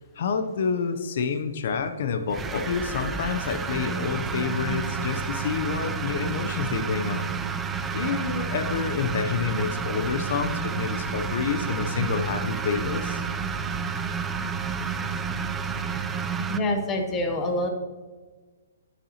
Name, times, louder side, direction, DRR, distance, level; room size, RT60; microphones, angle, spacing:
voice 1, 0.2-7.3 7.9-13.2, left 6 dB, 50° left, 7 dB, 0.6 m, -28 dB
sound 1, 2.3-16.6, right 6 dB, 10° right, 0.3 m, -30 dB
voice 2, 16.5-17.7, left 1 dB, 15° left, 3 dB, 0.8 m, -26 dB
12.5 x 5.6 x 2.9 m, 1.4 s
hypercardioid pair, 160°, 0 cm